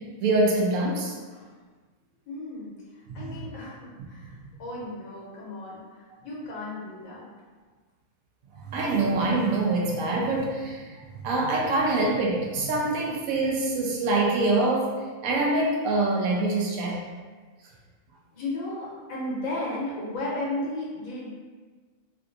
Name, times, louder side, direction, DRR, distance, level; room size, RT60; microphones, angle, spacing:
voice 1, 0.2-1.2 3.1-3.4 4.2-4.4 8.5-14.9 15.2-17.0, right 2 dB, 90° right, -2 dB, 1.1 m, -25 dB
voice 2, 2.3-7.3 16.8-17.0 18.3-21.3, left 2 dB, 80° left, -6 dB, 1.4 m, -35 dB
3.3 x 2.5 x 2.6 m, 1.4 s
omnidirectional pair, 1.4 m